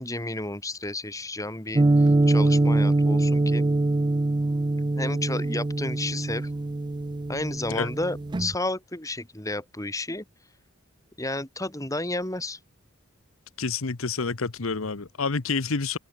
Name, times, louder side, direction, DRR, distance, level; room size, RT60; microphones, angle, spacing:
voice 1, 0.0-3.6 5.0-6.5 7.3-10.2 11.2-12.6, left 2 dB, 15° left, 3.5 m, -32 dB
sound 1, 1.8-8.6, right 2 dB, 20° right, 0.4 m, -23 dB
voice 2, 13.6-16.0, left 4 dB, 75° left, 1.1 m, -28 dB
open air
head